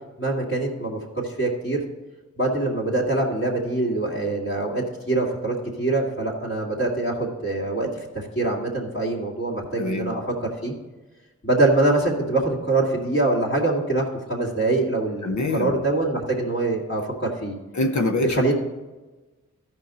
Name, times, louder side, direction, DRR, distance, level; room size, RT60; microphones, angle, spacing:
voice 1, 0.2-1.8 2.4-10.7 11.4-14.0 14.3-17.6 18.3-18.5, right 2 dB, 40° left, -7 dB, 2.6 m, -24 dB
voice 2, 9.8-10.1 15.2-15.8 17.7-18.5, left 2 dB, 70° left, 4 dB, 0.9 m, -25 dB
13.5 x 5.3 x 4.1 m, 1.2 s
cardioid pair, 40°, 30 cm